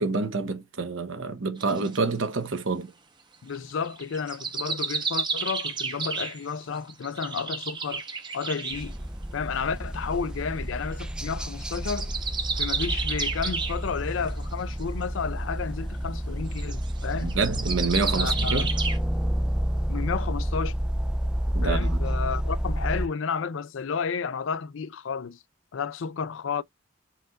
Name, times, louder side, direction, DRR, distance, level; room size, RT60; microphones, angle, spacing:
voice 1, 0.0-2.9 17.2-18.7 21.5-22.0, right 4 dB, 75° right, 0.9 m, -28 dB
sound 1, 1.6-2.0 3.5-8.9 11.0-11.3 11.6-13.9 14.3-14.4 14.7-14.8 16.5-19.0, right 5 dB, 25° right, 0.7 m, -31 dB
voice 2, 3.4-8.0 8.3-9.0 9.3-12.1 12.6-17.4 18.2-18.7 19.9-20.8 21.6-25.4 25.7-26.6, left 6 dB, 75° left, 0.4 m, -32 dB
sound 2, 8.7-23.1, equal, 5° right, 0.3 m, -29 dB
4.4 x 2.4 x 3.9 m
head